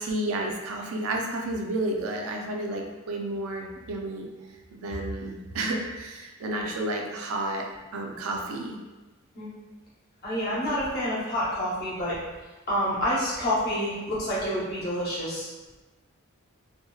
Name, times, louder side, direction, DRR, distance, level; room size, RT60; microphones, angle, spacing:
voice 1, 0.0-4.3 4.7-7.7 7.9-8.8, right 1 dB, 75° right, 1 dB, 0.4 m, -31 dB
voice 2, 10.2-12.2 12.7-15.5, equal, 50° left, -8 dB, 0.9 m, -28 dB
2.6 x 2.1 x 2.3 m, 1.2 s
head